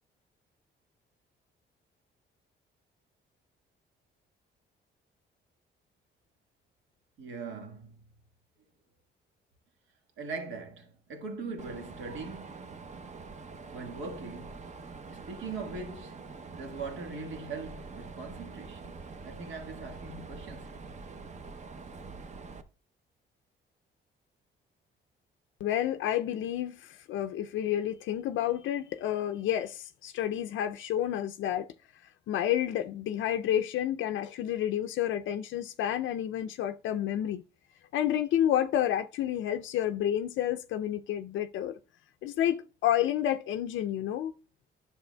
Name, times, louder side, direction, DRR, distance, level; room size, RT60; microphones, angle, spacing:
voice 1, 7.2-8.1 10.2-12.7 13.7-14.6 15.1-16.2 16.6-19.0 19.2-20.8, right 4 dB, 80° right, 1.5 m, -41 dB
Mechanisms, 11.6-22.6, right 4 dB, 35° right, 0.7 m, -45 dB
voice 2, 25.6-31.7 32.3-37.4 37.9-41.8 42.2-44.3, left 11 dB, 75° left, 0.4 m, -30 dB
10.5 x 6.8 x 2.2 m
cardioid pair, 90°, 20 cm